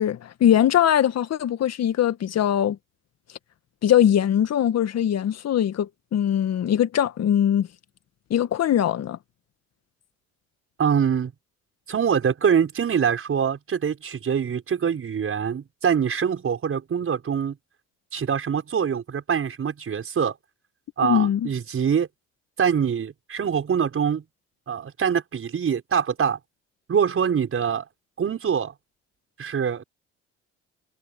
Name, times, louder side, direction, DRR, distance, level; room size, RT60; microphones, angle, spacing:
voice 1, 0.0-2.8 3.8-7.7 8.3-9.2 21.0-21.5, left 10 dB, 55° left, 2.0 m, -21 dB
voice 2, 10.8-11.3 11.9-17.6 18.1-20.4 21.0-22.1 22.6-24.2 24.7-26.4 26.9-27.9 28.2-28.7 29.4-29.8, right 7 dB, 45° right, 5.7 m, -24 dB
hypercardioid pair, 65°, 32 cm